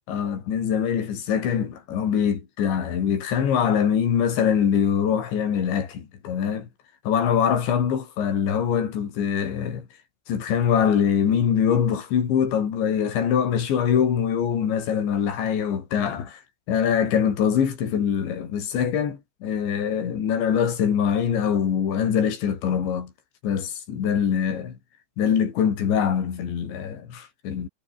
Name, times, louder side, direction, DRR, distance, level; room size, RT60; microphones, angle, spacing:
voice 1, 0.1-6.7 7.1-9.9 10.3-16.4 16.7-23.1 23.4-24.7 25.2-27.7, left 8 dB, 85° left, 6.1 m, -23 dB
omnidirectional pair, 5.1 m